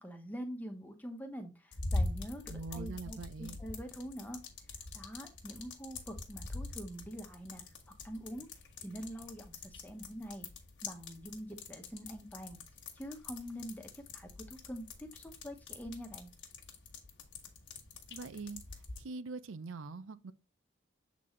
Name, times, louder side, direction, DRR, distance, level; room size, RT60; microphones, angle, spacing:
voice 1, 0.0-4.4 4.9-8.5 8.8-10.5 10.8-12.6 13.0-16.3, equal, 10° left, 0.9 m, -45 dB
sound 1, 1.7-19.0, left 2 dB, 60° left, 1.4 m, -44 dB
voice 2, 2.5-3.6 18.1-18.6 19.0-20.3, right 4 dB, 80° right, 0.5 m, -43 dB
7.5 x 4.1 x 3.1 m
head